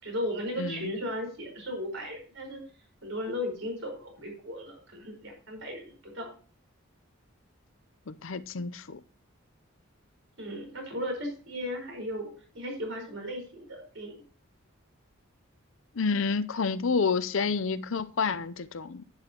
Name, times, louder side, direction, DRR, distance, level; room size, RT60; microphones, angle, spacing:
voice 1, 0.0-2.6 3.0-6.3 10.4-14.2, equal, 65° right, 4.9 m, -36 dB
voice 2, 0.6-0.9 8.1-9.0 15.9-19.0, left 5 dB, 70° left, 0.6 m, -29 dB
10.5 x 9.8 x 3.0 m
head